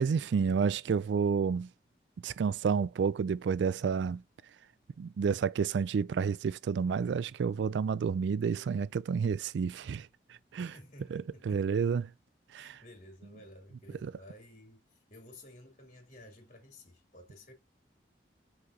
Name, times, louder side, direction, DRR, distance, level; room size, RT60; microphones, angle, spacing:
voice 1, 0.0-1.7 2.2-4.2 5.0-10.7 11.1-12.1 12.5-12.8 14.0-14.1, right 6 dB, 85° right, 0.3 m, -30 dB
voice 2, 10.6-11.6 12.6-17.5, left 1 dB, 45° left, 3.2 m, -53 dB
6.0 x 5.8 x 2.7 m
head